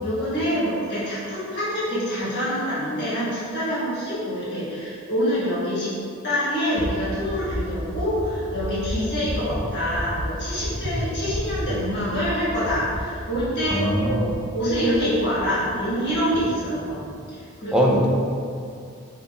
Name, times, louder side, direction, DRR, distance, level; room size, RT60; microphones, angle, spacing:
voice 1, 0.0-5.9 6.2-18.1, equal, 55° left, -11 dB, 1.4 m, -26 dB
sound 1, 6.7-15.7 16.1-16.4 16.8-17.1, equal, 60° right, 0.6 m, -32 dB
voice 2, 13.7-14.3 17.7-18.1, equal, 5° right, -3 dB, 0.4 m, -21 dB
5.4 x 3.7 x 2.3 m, 2.4 s
head